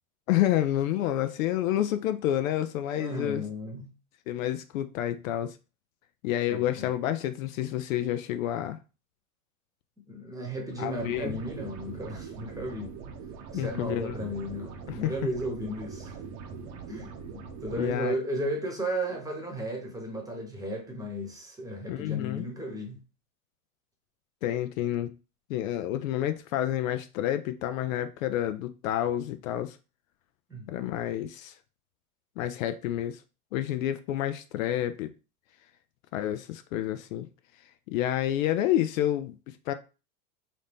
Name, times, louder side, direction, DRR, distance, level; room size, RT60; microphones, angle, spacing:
voice 1, 0.3-3.4 4.3-5.6 6.2-8.8 10.8-11.4 13.5-14.3 14.9-15.1 17.8-18.1 21.9-22.4 24.4-25.2 25.5-29.8 30.7-31.5 32.4-33.2 33.5-35.1 36.1-37.3 37.9-39.7, left 12 dB, 65° left, 0.5 m, -29 dB
voice 2, 3.0-3.9 6.5-6.9 10.1-12.9 13.5-16.2 16.9-23.0 30.5-30.7, right 1 dB, 10° right, 1.1 m, -35 dB
sound 1, 10.7-17.9, right 5 dB, 40° right, 0.8 m, -42 dB
4.0 x 2.6 x 3.5 m
hypercardioid pair, 115°, 44 cm